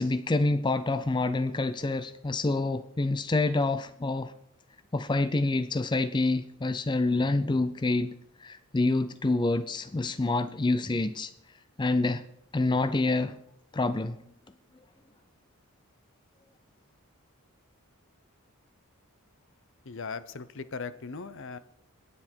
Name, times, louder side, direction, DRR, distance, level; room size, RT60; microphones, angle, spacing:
voice 1, 0.0-4.3 4.9-8.1 8.4-11.3 11.8-12.2 12.5-13.4 13.7-14.2, left 2 dB, 20° left, 12 dB, 0.4 m, -27 dB
voice 2, 19.8-21.6, left 4 dB, 55° left, 14 dB, 0.7 m, -38 dB
22.5 x 9.8 x 4.5 m, 0.77 s
head